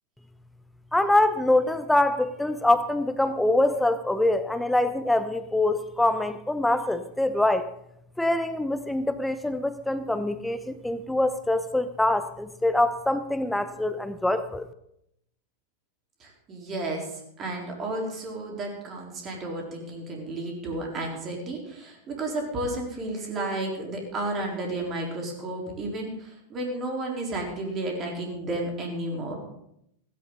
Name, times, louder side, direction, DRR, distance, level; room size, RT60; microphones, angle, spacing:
voice 1, 0.9-7.7 8.2-14.7, left 1 dB, 5° left, 11 dB, 0.8 m, -24 dB
voice 2, 16.2-17.1 17.4-29.4, right 2 dB, 30° right, 0 dB, 4.1 m, -32 dB
16.0 x 16.0 x 4.0 m, 0.76 s
figure-of-eight pair, 90°, 0 cm